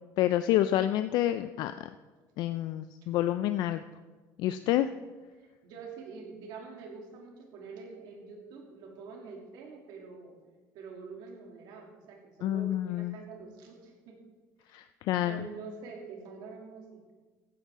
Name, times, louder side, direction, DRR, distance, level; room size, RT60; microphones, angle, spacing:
voice 1, 0.2-1.9 2.4-3.8 4.4-4.9 12.4-13.2 14.7-15.4, left 13 dB, 65° left, 11 dB, 0.4 m, -28 dB
voice 2, 5.4-10.4 10.7-14.2 15.2-17.1, right 4 dB, 70° right, 0 dB, 2.8 m, -46 dB
14.5 x 11.0 x 3.7 m, 1.3 s
cardioid pair, 120°, 7 cm